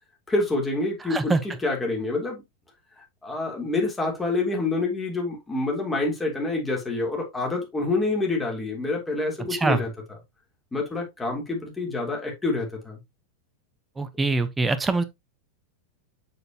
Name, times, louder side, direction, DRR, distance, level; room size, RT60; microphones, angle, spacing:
voice 1, 0.3-1.3 1.6-2.4 3.2-9.9 10.7-13.0, left 2 dB, 10° left, 3.4 m, -27 dB
voice 2, 1.0-1.4 9.5-9.9 14.0-15.0, right 3 dB, 15° right, 1.0 m, -24 dB
6.9 x 6.5 x 2.9 m
figure-of-eight pair, 90°, 0 cm